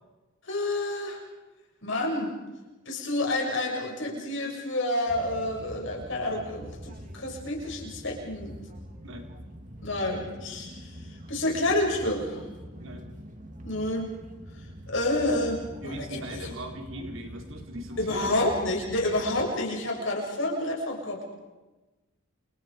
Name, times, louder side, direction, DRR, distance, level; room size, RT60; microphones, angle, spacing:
voice 1, 0.5-1.2 1.8-2.3 2.9-8.6 9.8-11.0 11.3-12.4 13.6-14.1 14.9-16.5 18.0-21.3, left 1 dB, 55° left, 0 dB, 7.1 m, -29 dB
sound 1, 5.1-19.5, equal, 35° right, 2.3 m, -44 dB
voice 2, 15.8-18.3, right 1 dB, 65° right, 3 dB, 3.9 m, -39 dB
29.5 x 29.0 x 5.2 m, 1.1 s
head